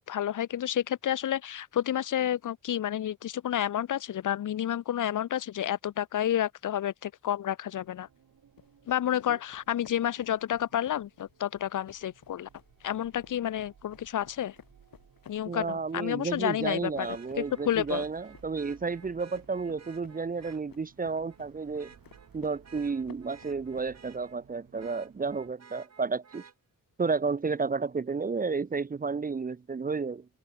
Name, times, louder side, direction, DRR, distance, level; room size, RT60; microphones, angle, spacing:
voice 1, 0.0-8.1 8.9-12.5 12.8-14.6 15.3-18.0, left 11 dB, 65° left, 0.6 m, -30 dB
sound 1, 7.7-25.5, right 8 dB, 70° right, 5.2 m, -60 dB
sound 2, 8.6-24.2, left 8 dB, 80° left, 6.3 m, -56 dB
Vehicle horn car horn honking, 14.2-14.3 17.0-20.6 21.1-21.4 21.8-24.4 24.8-26.5 28.4-28.5, right 6 dB, 50° right, 6.8 m, -54 dB
voice 2, 15.5-21.9 22.3-26.4 27.0-30.3, right 4 dB, 25° right, 0.6 m, -32 dB
wide cardioid pair, 150°, 34 cm